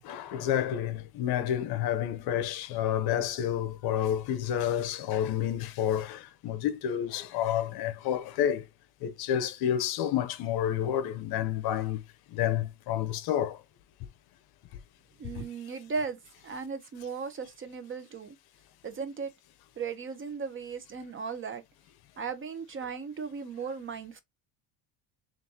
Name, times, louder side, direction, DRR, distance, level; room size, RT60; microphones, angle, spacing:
voice 1, 0.0-8.6 9.0-12.0 12.3-13.6, left 10 dB, 55° left, 0.8 m, -29 dB
voice 2, 15.2-18.4 18.8-19.3 19.8-21.6 22.2-24.2, right 5 dB, 30° right, 0.7 m, -37 dB
6.2 x 2.6 x 2.8 m
cardioid pair, 125°, 44 cm